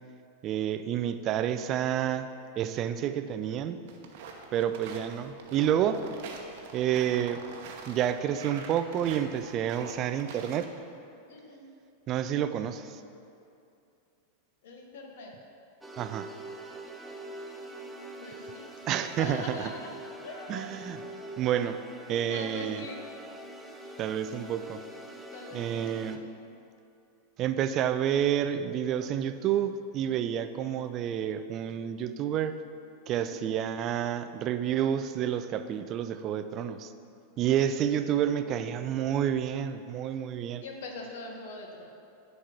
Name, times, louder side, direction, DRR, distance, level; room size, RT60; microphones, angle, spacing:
voice 1, 0.4-3.8 4.5-6.1 6.7-7.4 7.9-10.7 12.1-13.0 16.0-16.3 18.9-19.7 20.5-21.0 21.4-21.8 22.1-22.8 24.0-24.8 25.5-26.2 27.4-32.6 33.1-36.9 37.4-40.6, right 10 dB, 35° right, 11 dB, 0.4 m, -29 dB
sound 1, 3.9-10.7, right 5 dB, 50° right, 0.9 m, -45 dB
voice 2, 11.3-11.7 14.6-15.3 18.2-20.0 20.2-20.7 22.3-23.0 25.3-26.1 33.2-33.5 38.1-38.9 40.6-42.0, left 2 dB, 55° left, 2 dB, 1.2 m, -43 dB
sound 2, 15.8-26.2, right 1 dB, 5° right, 0.7 m, -44 dB
9.9 x 4.2 x 6.0 m, 2.6 s
figure-of-eight pair, 90°, 0 cm